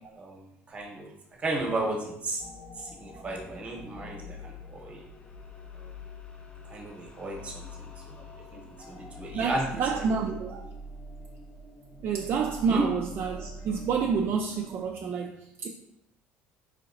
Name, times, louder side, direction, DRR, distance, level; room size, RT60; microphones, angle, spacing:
voice 1, 0.2-1.1 1.4-2.4 2.8-5.0 5.7-5.9 6.7-8.2 8.5-10.0 12.7-12.8, right 2 dB, 25° right, -1 dB, 1.0 m, -34 dB
sound 1, 2.4-14.9, left 1 dB, 25° left, 0.5 m, -45 dB
voice 2, 9.3-10.6 12.0-15.7, right 6 dB, 50° right, 1 dB, 0.3 m, -29 dB
4.8 x 2.9 x 2.5 m, 0.81 s
cardioid pair, 130°, 5 cm